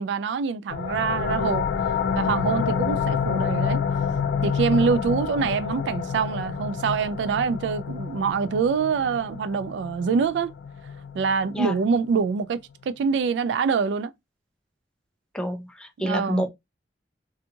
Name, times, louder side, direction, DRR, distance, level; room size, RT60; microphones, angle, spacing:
voice 1, 0.0-1.7 2.1-3.8 4.4-10.5 11.1-14.1 16.0-16.4, right 5 dB, 75° right, 0.3 m, -25 dB
sound 1, 0.7-12.1, left 6 dB, 85° left, 0.3 m, -28 dB
voice 2, 15.3-16.5, equal, 5° left, 0.4 m, -28 dB
2.6 x 2.3 x 2.6 m
head